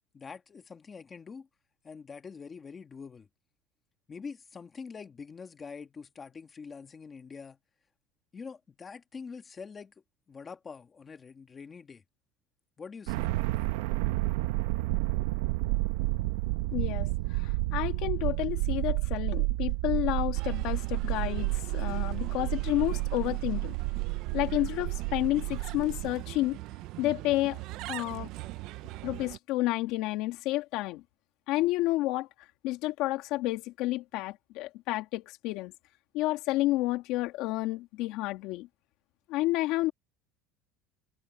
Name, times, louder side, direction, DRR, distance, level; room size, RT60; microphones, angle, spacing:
voice 1, 0.1-1.5 1.8-3.3 4.1-7.6 8.3-9.9 10.3-12.0 12.8-13.7, left 5 dB, 15° left, 1.6 m, -45 dB
sound 1, 13.1-26.1, right 20 dB, 85° right, 1.2 m, -30 dB
voice 2, 16.7-23.8 24.3-26.6 27.0-27.6 27.9-28.3 29.0-31.0 31.5-32.3 32.6-35.7 36.1-38.7 39.3-39.9, left 18 dB, 55° left, 2.6 m, -30 dB
Bird, 20.3-29.4, right 19 dB, 50° right, 0.6 m, -41 dB
cardioid pair, 170°, 0 cm